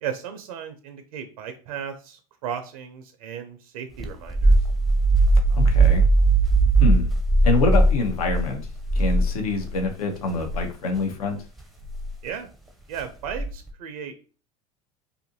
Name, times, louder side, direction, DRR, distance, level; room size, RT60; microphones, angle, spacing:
voice 1, 0.0-4.6 12.2-12.5 12.9-14.3, right 8 dB, 75° right, 8 dB, 0.5 m, -35 dB
sound 1, 4.0-9.9 10.3-10.6 11.8-12.1 13.3-13.7, right 2 dB, ahead, 0.5 m, -19 dB
voice 2, 5.5-6.1 6.8-7.1 7.4-8.7 8.9-11.4, left 3 dB, 80° left, 4 dB, 0.6 m, -25 dB
2.6 x 2.5 x 2.6 m, 0.36 s
hypercardioid pair, 80°, 18 cm